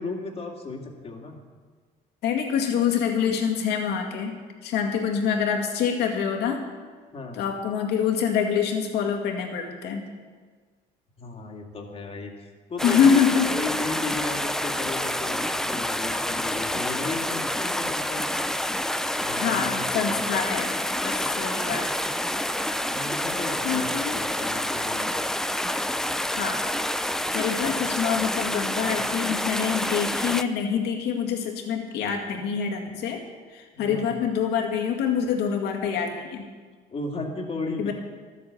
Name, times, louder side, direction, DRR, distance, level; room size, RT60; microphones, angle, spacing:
voice 1, 0.0-1.4 7.1-7.4 11.2-18.3 19.2-20.3 22.9-25.2 33.7-34.1 36.9-37.9, left 3 dB, 35° left, 2 dB, 2.2 m, -35 dB
voice 2, 2.2-6.7 7.3-10.1 12.8-13.6 19.4-20.7 21.0-21.9 23.6-24.2 26.3-26.6 27.3-33.2 33.5-36.4 37.8-37.9, left 7 dB, 80° left, 2 dB, 2.2 m, -25 dB
sound 1, 12.8-30.4, left 1 dB, 5° left, 0.5 m, -28 dB
13.0 x 8.4 x 8.1 m, 1.5 s
cardioid pair, 110°, 17 cm